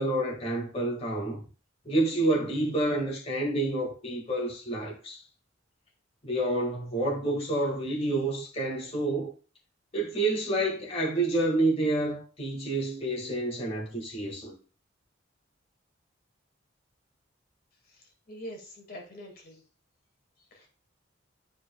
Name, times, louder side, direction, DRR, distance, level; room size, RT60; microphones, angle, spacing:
voice 1, 0.0-1.4 1.9-5.2 6.2-9.3 9.9-14.6, right 2 dB, 35° left, 1.9 m, -28 dB
voice 2, 18.3-19.6 20.5-20.7, equal, 50° left, 2.0 m, -43 dB
11.5 x 5.1 x 2.3 m
head